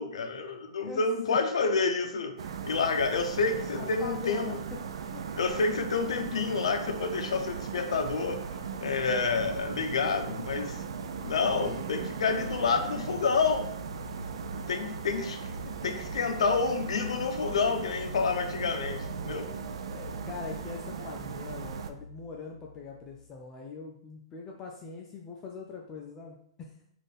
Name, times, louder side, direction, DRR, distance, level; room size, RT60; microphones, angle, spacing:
voice 1, 0.0-2.3 2.7-4.5 5.4-8.4 8.8-10.8 11.2-13.7 14.5-15.4 15.8-19.5, left 4 dB, 85° left, 6 dB, 0.6 m, -29 dB
sound 1, 2.4-21.9, right 6 dB, 75° right, 0.3 m, -38 dB
voice 2, 3.7-5.2 6.1-6.3 11.5-12.1 15.7-15.8 19.8-26.7, left 5 dB, 20° left, 0 dB, 0.3 m, -42 dB
sound 2, 9.2-23.3, left 2 dB, 40° left, 0.7 m, -47 dB
3.3 x 2.5 x 4.1 m, 0.70 s
hypercardioid pair, 165°, 3 cm